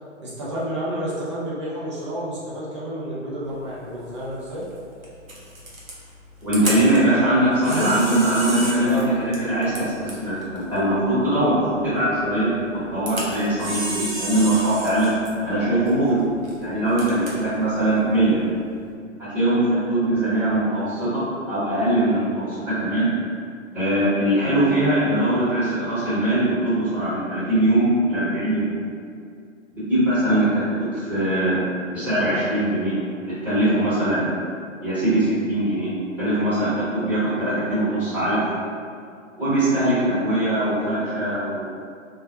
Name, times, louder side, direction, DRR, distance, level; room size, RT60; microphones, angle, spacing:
voice 1, 0.2-4.6 7.6-8.0 8.9-9.2, equal, 25° right, -8 dB, 0.4 m, -30 dB
Camera, 3.4-18.9, right 1 dB, 85° right, 0.8 m, -35 dB
voice 2, 6.4-15.1 15.4-16.2 16.6-18.4 19.3-21.2 21.5-23.1 23.7-28.7 29.7-31.6 31.8-32.9 33.2-34.3 34.8-35.9 36.2-38.4 39.4-41.6, right 1 dB, 5° right, -16 dB, 1.0 m, -21 dB
2.3 x 2.0 x 2.7 m, 2.3 s
figure-of-eight pair, 125°, 40 cm